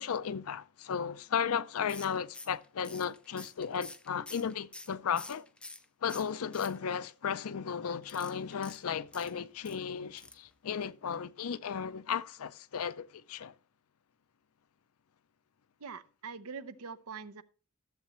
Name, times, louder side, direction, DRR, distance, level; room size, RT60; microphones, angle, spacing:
voice 1, 0.0-5.5 6.0-13.5, left 7 dB, 75° left, 0.5 m, -35 dB
sound 1, 1.9-5.8 6.1-7.1 8.0-9.8 10.2-10.5 10.8-10.9 11.1-11.2, left 2 dB, 5° left, 0.4 m, -48 dB
voice 2, 15.8-17.4, right 5 dB, 80° right, 0.7 m, -43 dB
13.5 x 7.5 x 3.0 m
head